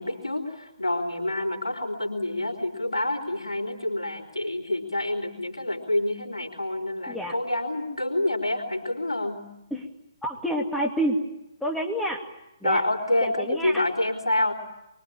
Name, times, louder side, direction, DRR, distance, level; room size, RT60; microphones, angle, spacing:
voice 1, 0.0-9.5 12.6-14.5, left 1 dB, 75° left, 3 dB, 4.4 m, -27 dB
voice 2, 10.2-11.2 11.6-12.2 12.6-12.8 13.2-13.8, equal, 5° left, 2 dB, 2.4 m, -28 dB
25.0 x 24.0 x 8.8 m, 0.92 s
figure-of-eight pair, 135°, 3 cm